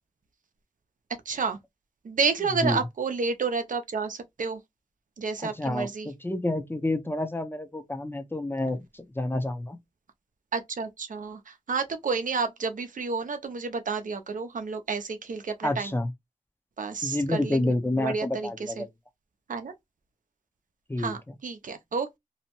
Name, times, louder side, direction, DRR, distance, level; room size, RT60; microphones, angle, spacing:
voice 1, 1.3-1.6 2.0-4.6 5.2-6.1 10.5-15.9 16.8-18.9 19.5-19.7 21.0-22.2, right 4 dB, 80° right, 0.5 m, -30 dB
voice 2, 5.4-9.8 15.6-16.1 17.0-18.9 20.9-21.3, left 2 dB, 15° left, 0.5 m, -29 dB
2.7 x 2.1 x 2.9 m
wide cardioid pair, 65°, 13 cm